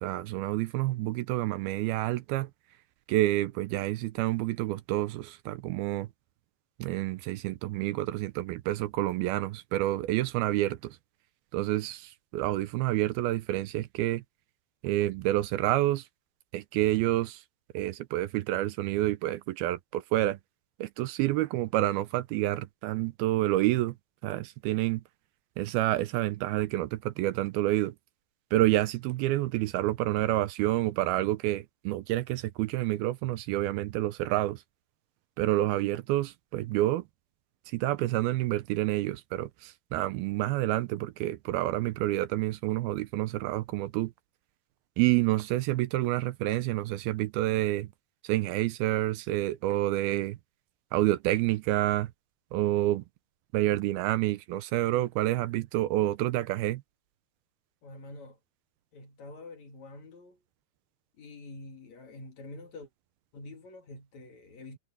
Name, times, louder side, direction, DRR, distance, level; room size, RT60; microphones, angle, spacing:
voice 1, 0.0-2.5 3.1-6.1 6.8-11.0 11.5-14.2 14.8-16.0 16.5-17.4 17.7-20.4 20.8-23.9 24.2-25.0 25.6-27.9 28.5-34.6 35.4-37.0 37.7-44.1 45.0-47.9 48.2-50.4 50.9-52.1 52.5-53.0 53.5-56.8, right 16 dB, 80° right, 2.5 m, -28 dB
voice 2, 57.8-58.4 58.9-60.4 61.2-62.9 63.3-64.8, left 2 dB, 50° left, 3.3 m, -46 dB
omnidirectional pair, 4.5 m